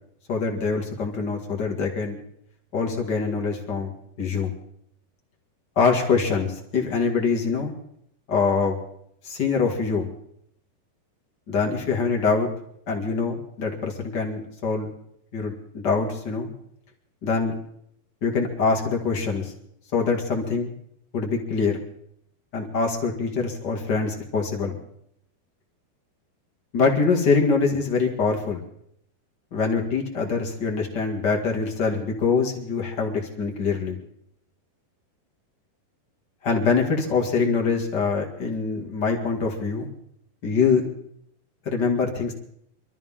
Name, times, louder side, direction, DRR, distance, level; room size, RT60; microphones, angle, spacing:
voice 1, 0.3-2.2 2.7-4.5 5.8-7.7 8.3-8.8 9.2-10.1 11.5-12.5 12.9-14.9 15.3-16.5 17.2-17.5 18.2-19.5 19.9-20.7 21.1-21.8 22.5-24.8 26.7-28.6 29.5-34.0 36.4-39.9 40.4-40.8 41.7-42.3, left 4 dB, 35° left, 1 dB, 1.7 m, -24 dB
24.5 x 13.0 x 3.7 m, 0.70 s
omnidirectional pair, 4.9 m